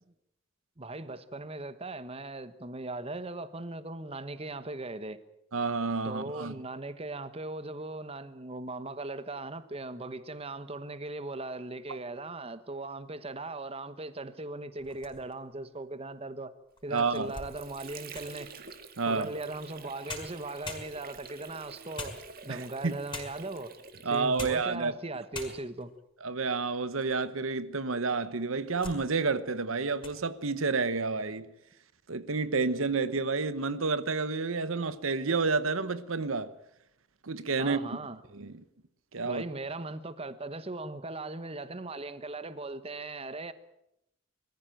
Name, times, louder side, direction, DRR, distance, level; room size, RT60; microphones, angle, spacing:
voice 1, 0.8-5.2 6.0-16.5 16.8-18.5 19.1-22.2 22.4-23.7 24.1-25.9 37.6-38.2 39.2-43.5, right 2 dB, 30° right, 1.1 m, -39 dB
voice 2, 5.5-6.5 16.9-17.3 19.0-19.3 22.5-22.9 24.0-24.9 26.2-31.5 32.1-36.5 37.2-37.8 38.3-38.6 39.1-39.4, right 4 dB, 85° right, 1.1 m, -30 dB
sound 1, 14.8-15.5 16.1-16.2 16.8-18.4 19.7-19.8 20.1-21.3 22.0-22.7 23.1-23.6 24.2-24.7 25.0-25.1 25.3-25.9 26.5-27.2 27.6-27.7 28.3-29.0 29.4-29.6 29.9-30.2, left 3 dB, 25° left, 5.5 m, -43 dB
Water / Sink (filling or washing), 17.0-24.7, right 4 dB, 45° right, 1.8 m, -48 dB
23.0 x 15.0 x 9.1 m
head